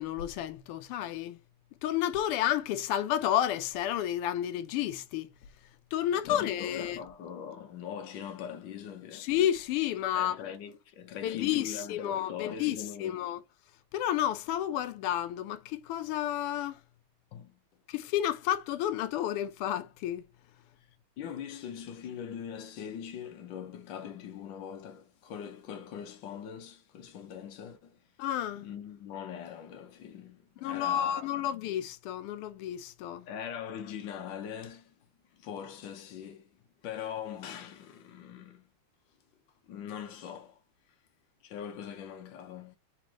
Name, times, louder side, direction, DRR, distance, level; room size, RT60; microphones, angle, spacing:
voice 1, 0.0-1.4 1.8-5.3 5.9-7.0 9.1-10.4 11.2-13.4 13.9-16.8 17.9-20.2 28.2-28.7 30.6-33.3, left 11 dB, 90° left, 1.5 m, -31 dB
voice 2, 6.1-9.3 10.1-13.2 17.3-17.6 21.2-28.0 28.6-31.3 33.3-34.9 35.3-36.5 36.8-38.7 39.7-40.6 41.4-42.8, left 8 dB, 65° left, 1.4 m, -42 dB
4.1 x 3.1 x 3.5 m
omnidirectional pair, 2.4 m